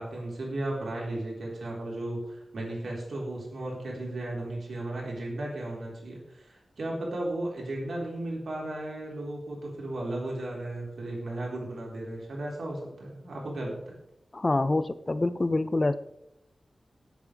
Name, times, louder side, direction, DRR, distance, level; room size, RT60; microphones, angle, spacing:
voice 1, 0.0-14.0, right 1 dB, 85° right, -3 dB, 4.2 m, -35 dB
voice 2, 14.3-15.9, left 2 dB, 30° left, 13 dB, 0.5 m, -26 dB
18.0 x 8.2 x 3.4 m, 0.83 s
wide cardioid pair, 100°, 0 cm